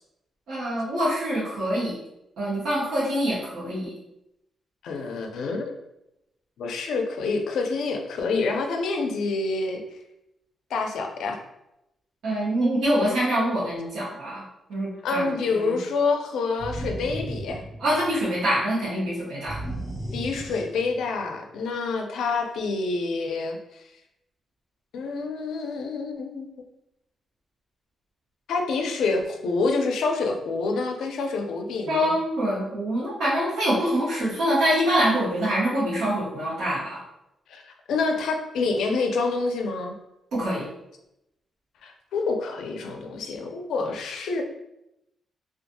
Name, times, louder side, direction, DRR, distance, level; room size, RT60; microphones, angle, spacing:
voice 1, 0.5-2.0 2.4-4.0 12.2-14.4 14.7-15.8 17.8-19.6 31.9-37.0 40.3-40.7, equal, 65° right, -8 dB, 0.9 m, -25 dB
voice 2, 4.8-5.7 6.6-9.8 10.7-11.4 15.0-17.6 20.1-23.8 24.9-26.5 28.5-32.1 37.5-39.9 41.8-44.4, left 3 dB, 90° left, 3 dB, 0.4 m, -27 dB
sound 1, 16.6-18.3 19.5-21.1, right 1 dB, 5° left, 1.2 m, -35 dB
2.5 x 2.3 x 2.6 m, 0.86 s
wide cardioid pair, 180°, 0 cm